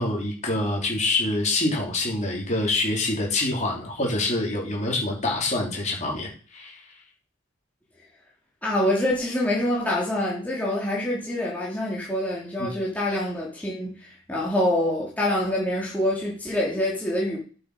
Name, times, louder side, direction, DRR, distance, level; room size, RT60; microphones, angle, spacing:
voice 1, 0.0-6.8 12.6-12.7, left 2 dB, 35° left, 3.0 m, -26 dB
voice 2, 8.6-17.4, left 1 dB, 10° left, 2.4 m, -26 dB
8.6 x 5.9 x 4.8 m
head